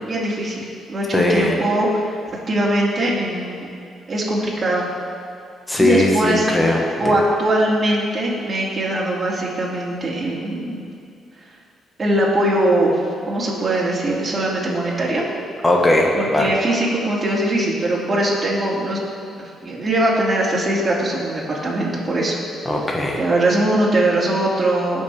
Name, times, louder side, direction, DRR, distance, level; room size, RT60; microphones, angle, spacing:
voice 1, 0.1-2.2 2.5-3.7 4.1-4.9 5.8-6.5 7.0-10.8 12.0-13.0 13.3-15.3 16.1-19.0 19.4-22.4 23.2-25.0, right 1 dB, 30° right, -6 dB, 2.2 m, -21 dB
voice 2, 1.1-1.6 5.7-6.8 7.0-7.1 15.6-16.5 22.6-23.2, left 1 dB, 15° left, -1 dB, 1.3 m, -18 dB
16.5 x 5.5 x 3.3 m, 2.5 s
cardioid pair, 90°, 0 cm